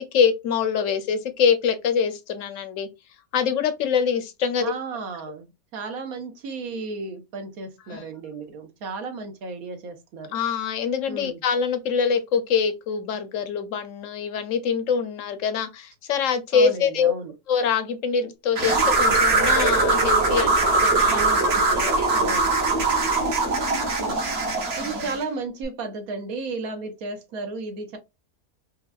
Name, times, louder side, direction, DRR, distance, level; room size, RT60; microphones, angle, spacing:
voice 1, 0.0-2.9 3.3-4.7 7.9-8.0 8.3-8.4 10.3-17.1 17.5-22.1 24.9-25.2, left 6 dB, 65° left, 0.9 m, -24 dB
voice 2, 4.6-5.5 5.7-10.4 11.1-11.4 16.5-17.3 21.1-22.5 24.0-24.2 24.8-28.0, right 3 dB, 65° right, 1.4 m, -34 dB
sound 1, 18.6-25.2, right 3 dB, 45° right, 1.1 m, -21 dB
5.2 x 2.2 x 2.3 m
omnidirectional pair, 1.7 m